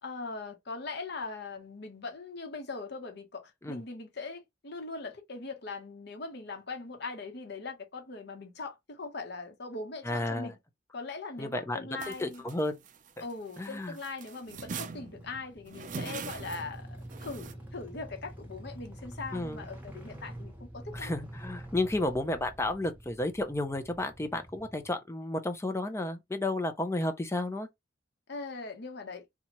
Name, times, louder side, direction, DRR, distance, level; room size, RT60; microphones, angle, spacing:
voice 1, 0.0-10.6 10.9-12.4 13.2-16.9 17.2-21.1 28.3-29.3, left 3 dB, 60° left, 1.0 m, -40 dB
voice 2, 10.0-10.5 11.4-12.8 13.2-13.3 13.6-14.0 19.3-19.6 20.9-27.7, left 2 dB, 15° left, 0.6 m, -32 dB
sound 1, 12.0-13.7 14.0-17.5, right 5 dB, 45° right, 0.5 m, -42 dB
sound 2, 14.9-24.9, right 1 dB, 10° right, 1.3 m, -46 dB
4.2 x 2.4 x 3.0 m
head